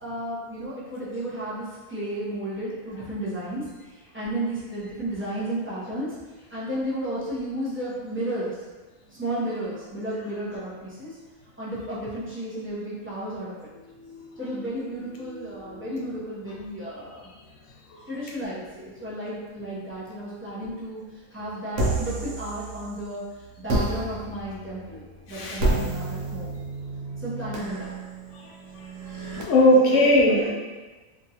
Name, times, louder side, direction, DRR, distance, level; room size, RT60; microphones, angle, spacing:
voice 1, 0.0-6.2 6.5-8.5 9.1-11.2 11.6-13.5 14.4-17.3 18.1-21.0 21.3-23.2 23.6-26.5 27.2-27.9 29.9-30.5, right 1 dB, 15° right, -9 dB, 0.4 m, -33 dB
voice 2, 13.9-14.6 15.2-16.1 17.9-18.0 25.3-25.6 28.3-28.5 29.2-30.5, left 1 dB, 65° left, -3 dB, 0.9 m, -22 dB
sound 1, 21.7-23.1 23.7-29.4, right 2 dB, 80° right, 1.0 m, -30 dB
2.9 x 2.4 x 2.8 m, 1.3 s
omnidirectional pair, 1.4 m